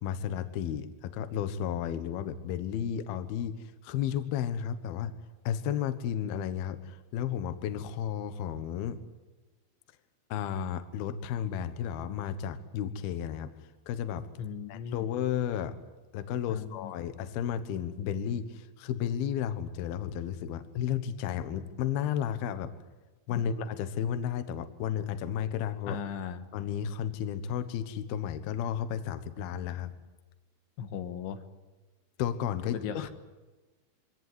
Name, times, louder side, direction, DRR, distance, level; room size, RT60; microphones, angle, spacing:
voice 1, 0.0-5.1 5.5-9.0 10.3-13.5 13.9-14.3 14.7-15.7 16.1-22.7 23.3-26.0 26.5-29.9 32.2-32.8, left 9 dB, 65° left, 10 dB, 2.8 m, -33 dB
voice 2, 14.4-15.1 16.5-16.9 23.3-23.5 25.9-26.4 30.8-31.4 32.7-33.1, left 7 dB, 85° left, 8 dB, 3.7 m, -37 dB
24.0 x 17.5 x 9.5 m, 1.2 s
omnidirectional pair, 5.3 m